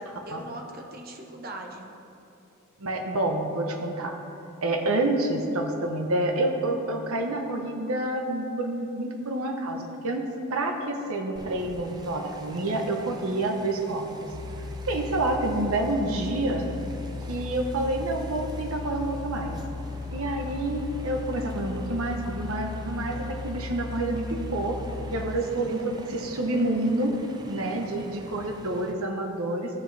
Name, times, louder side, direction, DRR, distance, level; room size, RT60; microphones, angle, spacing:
voice 1, 0.0-1.9 16.0-16.4 25.6-25.8 27.7-27.8, right 1 dB, 45° right, 2 dB, 0.8 m, -41 dB
voice 2, 2.8-4.2 4.6-14.1 14.9-16.7 17.3-19.6 20.1-24.8 25.1-27.1 27.5-29.7, right 2 dB, 80° right, 3 dB, 1.0 m, -28 dB
sound 1, 11.4-28.9, right 1 dB, 20° right, 0.4 m, -45 dB
sound 2, 14.3-25.4, left 4 dB, 90° left, 0.5 m, -36 dB
14.0 x 4.9 x 3.4 m, 2.8 s
head